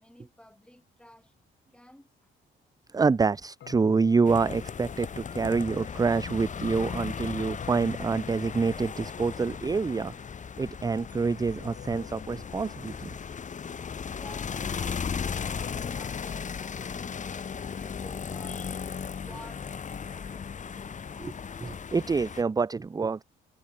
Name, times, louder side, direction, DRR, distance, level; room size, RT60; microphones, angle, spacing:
voice 1, 0.0-1.3 1.7-2.1 14.1-18.9 19.1-19.7 20.0-21.6, left 1 dB, 5° left, 4.5 m, -52 dB
voice 2, 2.9-10.1 10.6-13.1 21.2-21.3 21.6-23.2, right 4 dB, 20° right, 0.5 m, -27 dB
sound 1, 3.6-5.7 7.6-9.4 11.6-13.4 15.6-17.8, left 10 dB, 65° left, 4.7 m, -50 dB
sound 2, 4.2-22.4, left 6 dB, 40° left, 1.3 m, -36 dB
cardioid pair, 90°, 20 cm